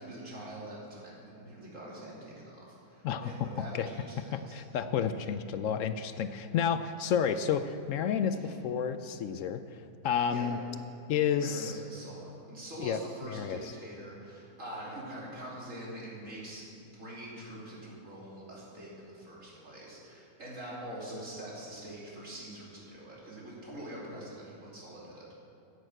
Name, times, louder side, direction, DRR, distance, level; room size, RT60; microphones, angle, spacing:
voice 1, 0.0-4.6 8.3-8.6 10.3-10.5 11.4-25.3, right 1 dB, 55° right, -5 dB, 3.3 m, -44 dB
voice 2, 3.0-3.5 3.7-3.9 4.3-10.6 11.1-11.7 12.8-13.0 13.3-13.7, left 8 dB, 70° left, 10 dB, 0.8 m, -31 dB
11.0 x 8.2 x 7.7 m, 2.5 s
omnidirectional pair, 1.6 m